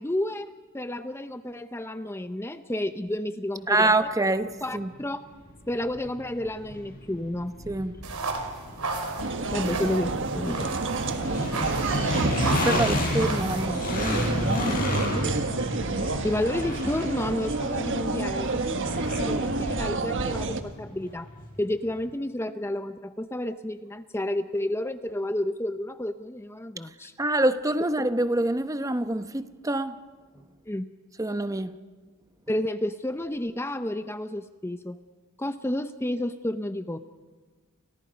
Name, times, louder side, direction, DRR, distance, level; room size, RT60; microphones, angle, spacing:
voice 1, 0.0-4.1 4.6-5.3 5.7-7.6 9.5-10.7 16.2-21.3 21.6-27.1 30.7-30.9 32.5-35.0 35.4-37.0, left 1 dB, 10° left, 0.7 m, -31 dB
voice 2, 3.7-4.9 7.7-8.0 12.5-14.9 27.2-30.0 31.2-31.8, right 2 dB, 15° right, 0.9 m, -26 dB
motorcycle dirt bike motocross pass by fast, 4.9-5.0 5.5-21.5, left 1 dB, 40° left, 7.6 m, -32 dB
sound 1, 8.0-13.7, right 3 dB, 90° right, 4.3 m, -34 dB
sound 2, 9.2-20.6, right 3 dB, 60° right, 1.5 m, -29 dB
30.0 x 29.0 x 5.2 m
head